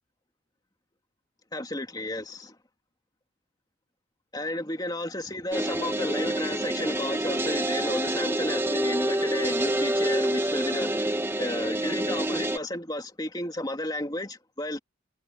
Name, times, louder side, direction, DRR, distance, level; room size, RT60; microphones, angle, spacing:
voice 1, 1.5-2.6 4.3-14.8, left 1 dB, 20° left, 2.8 m, -33 dB
sound 1, 5.5-12.6, right 1 dB, 10° right, 1.8 m, -27 dB
head